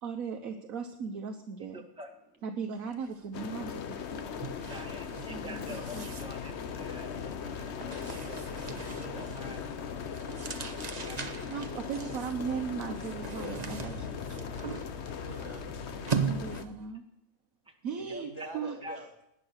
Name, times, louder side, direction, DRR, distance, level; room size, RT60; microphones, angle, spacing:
voice 1, 0.0-1.8 2.4-4.4 5.3-6.1 11.5-14.5 16.2-17.0 17.8-18.8, right 6 dB, 70° right, 4 dB, 1.4 m, -38 dB
voice 2, 1.7-2.4 4.1-10.5 10.7-11.5 17.6-17.7 18.4-18.5 18.8-19.0, equal, 5° right, 2 dB, 1.8 m, -48 dB
sound 1, 2.9-3.1 3.4-16.9, right 5 dB, 35° right, 0.9 m, -40 dB
sound 2, 3.3-16.7, left 8 dB, 55° left, 1.0 m, -39 dB
voice 3, 13.2-13.7 15.2-16.4 18.0-19.1, equal, 20° left, 0 dB, 2.8 m, -45 dB
18.5 x 10.5 x 6.5 m, 0.80 s
omnidirectional pair, 1.5 m